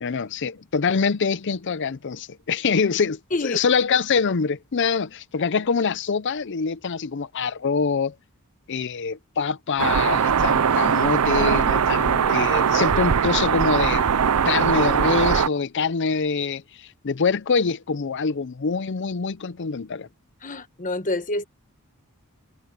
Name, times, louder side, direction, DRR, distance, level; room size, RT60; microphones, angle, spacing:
voice 1, 0.0-8.1 8.7-14.2 14.4-20.1, left 5 dB, 55° left, 0.6 m, -25 dB
sound 1, 9.8-15.5, right 7 dB, 85° right, 0.6 m, -20 dB
voice 2, 20.4-21.4, left 2 dB, 35° left, 1.3 m, -27 dB
head